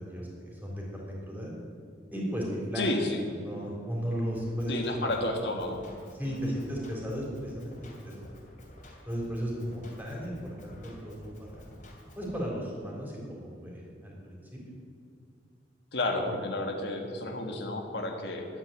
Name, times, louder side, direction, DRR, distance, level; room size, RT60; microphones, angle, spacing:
voice 1, 0.1-1.5 2.1-3.0 3.4-5.1 6.1-7.8 8.0-8.2 9.1-11.6 12.2-14.6, equal, 10° right, -3 dB, 3.6 m, -35 dB
voice 2, 2.8-3.2 4.7-5.8 6.3-6.6 15.9-18.5, left 2 dB, 65° left, 3 dB, 1.7 m, -31 dB
Drum kit, 4.3-12.3, equal, 45° left, 3.1 m, -51 dB
12.0 x 8.8 x 9.2 m, 2.3 s
head